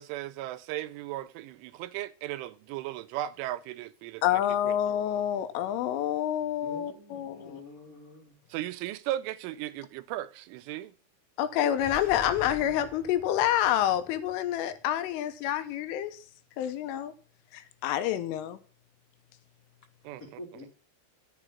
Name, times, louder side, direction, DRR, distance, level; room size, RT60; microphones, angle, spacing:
voice 1, 0.0-4.7 8.5-10.9 20.0-20.4, right 14 dB, 85° right, 3.1 m, -36 dB
voice 2, 4.2-7.6 11.4-16.2 16.6-17.1 17.5-18.6, left 11 dB, 90° left, 3.5 m, -28 dB
voice 3, 6.6-8.3 20.2-20.7, left 2 dB, 70° left, 0.8 m, -47 dB
sound 1, 11.7-15.5, left 1 dB, 15° left, 2.3 m, -47 dB
12.0 x 6.8 x 5.7 m
omnidirectional pair, 5.6 m